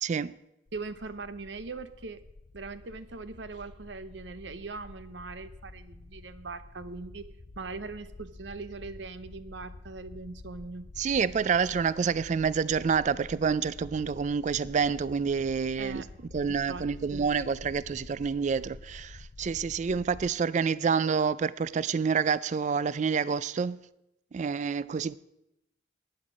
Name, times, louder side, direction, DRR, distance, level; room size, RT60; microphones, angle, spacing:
voice 1, 0.0-0.3 11.0-16.0 16.3-23.8 24.3-25.2, right 6 dB, 40° right, 0.3 m, -28 dB
sound 1, 0.7-20.3, left 2 dB, 40° left, 0.5 m, -48 dB
voice 2, 0.7-2.2 2.5-7.2 7.6-10.9 15.8-16.1 16.5-16.9 17.1-17.3, right 3 dB, 65° right, 0.8 m, -41 dB
11.5 x 9.7 x 6.1 m
head